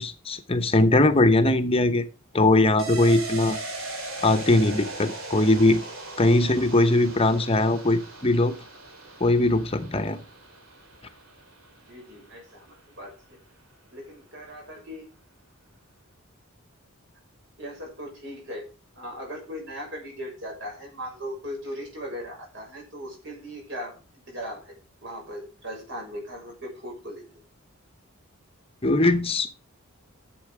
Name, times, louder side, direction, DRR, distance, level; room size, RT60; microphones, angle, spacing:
voice 1, 0.0-2.1 2.3-3.6 4.2-5.8 6.2-8.5 9.2-10.2 28.8-29.6, left 2 dB, 25° left, 0.9 m, -20 dB
sound 1, 2.8-12.2 12.5-12.6, right 2 dB, 75° right, 3.0 m, -38 dB
voice 2, 11.9-13.4 13.9-15.1 17.6-18.7 19.0-24.7 25.0-27.2, equal, 60° right, 6.4 m, -38 dB
12.0 x 7.8 x 4.9 m
head